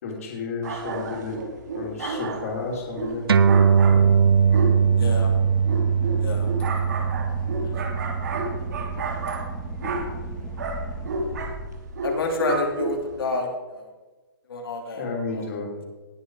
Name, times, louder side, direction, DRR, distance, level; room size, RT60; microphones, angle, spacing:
voice 1, 0.0-1.4 1.7-3.3 3.9-4.1 15.0-15.7, left 4 dB, 40° left, -1 dB, 3.1 m, -32 dB
sound 1, 0.6-13.2, right 3 dB, 50° right, 2.3 m, -32 dB
sound 2, 3.3-10.1, right 6 dB, 85° right, 0.8 m, -21 dB
Boat Water vehicle / Engine, 3.4-12.4, right 1 dB, 10° left, 1.6 m, -37 dB
voice 2, 5.0-5.3 6.2-6.5 12.0-13.5 13.8-13.9 14.5-15.0 15.3-15.4, left 3 dB, 75° left, 1 dB, 3.0 m, -28 dB
19.0 x 7.7 x 4.8 m, 1.2 s
hypercardioid pair, 180°, 12 cm